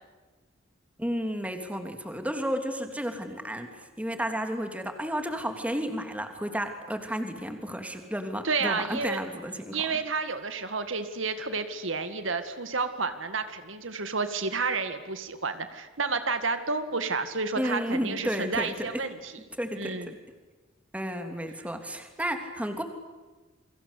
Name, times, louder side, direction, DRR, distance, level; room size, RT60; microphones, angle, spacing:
voice 1, 1.0-9.9 17.5-19.0 19.6-20.2 20.9-22.8, equal, 5° right, 6 dB, 3.2 m, -32 dB
voice 2, 8.4-9.2 9.7-19.3 19.8-20.1, right 4 dB, 70° right, 9 dB, 2.0 m, -30 dB
29.5 x 24.0 x 8.4 m, 1.2 s
head